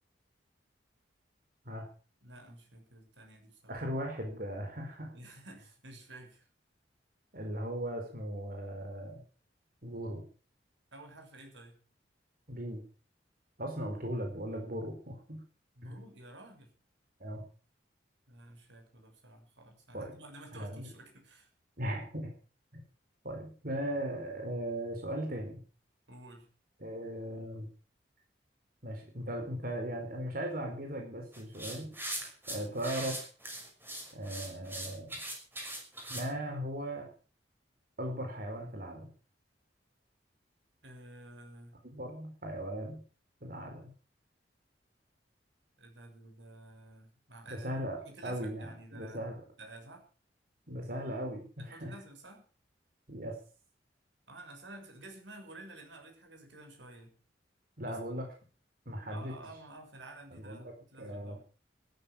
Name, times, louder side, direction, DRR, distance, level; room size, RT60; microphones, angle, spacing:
voice 1, 2.2-3.8 5.1-6.5 10.9-11.8 15.7-16.7 18.3-21.5 26.1-26.5 40.8-41.8 45.8-49.2 49.6-50.0 51.6-52.4 54.3-57.1 57.9-58.2 59.1-61.4, right 2 dB, 85° right, 4 dB, 6.7 m, -51 dB
voice 2, 3.7-5.1 7.3-9.2 9.8-10.2 12.5-12.8 13.6-15.4 15.8-16.0 17.2-17.4 19.9-20.1 20.5-20.9 21.8-22.3 22.7-22.8 23.2-25.6 26.8-27.7 28.8-31.9 32.5-33.2 34.1-35.1 36.1-37.1 38.0-39.1 41.8-43.0 43.4-43.9 47.6-49.4 50.7-51.9 53.1-53.4 57.8-58.3 58.9-59.3 60.3-60.7 61.0-61.4, right 1 dB, 50° right, 3 dB, 4.6 m, -38 dB
sound 1, 31.3-36.3, right 1 dB, 10° right, 6.1 m, -41 dB
14.5 x 12.5 x 7.4 m, 0.39 s
head